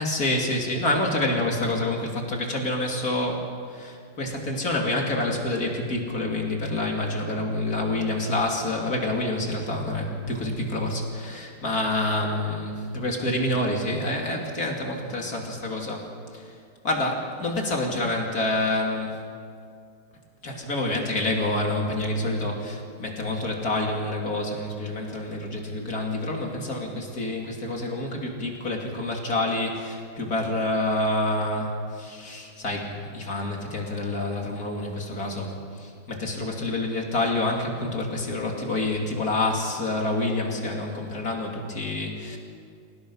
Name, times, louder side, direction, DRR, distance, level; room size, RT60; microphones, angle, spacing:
voice 1, 0.0-16.1 16.3-16.5 16.8-19.2 20.4-42.4, left 2 dB, 45° left, 0 dB, 3.2 m, -27 dB
27.5 x 18.0 x 5.6 m, 2.3 s
omnidirectional pair, 2.2 m